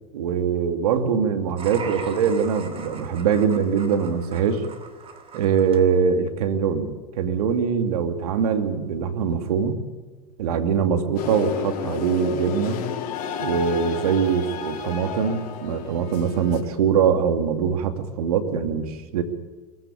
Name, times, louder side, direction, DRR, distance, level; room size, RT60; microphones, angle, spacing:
voice 1, 0.1-4.6 5.3-9.8 10.4-12.8 13.4-19.2, right 7 dB, 65° right, 7 dB, 2.5 m, -23 dB
sound 1, 1.6-5.8, right 6 dB, 30° right, 2.9 m, -40 dB
sound 2, 11.1-16.6, left 7 dB, 45° left, 4.8 m, -32 dB
23.0 x 15.5 x 8.6 m, 1.4 s
hypercardioid pair, 95°, 20 cm